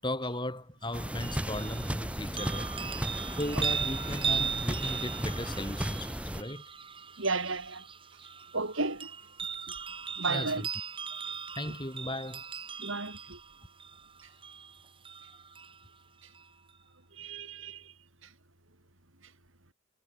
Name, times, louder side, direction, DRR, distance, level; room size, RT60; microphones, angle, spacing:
voice 1, 0.0-2.7 3.4-6.6 10.3-10.7 11.5-12.4, left 1 dB, 20° left, 7.9 m, -36 dB
sound 1, 0.8-15.8 16.3-16.4, right 6 dB, 25° right, 5.1 m, -38 dB
sound 2, 0.9-6.4, equal, 5° right, 3.8 m, -35 dB
voice 2, 7.2-7.9 8.5-9.1 10.2-10.7 12.8-13.4 17.1-17.9 18.2-18.3, right 3 dB, 70° right, 5.2 m, -34 dB
head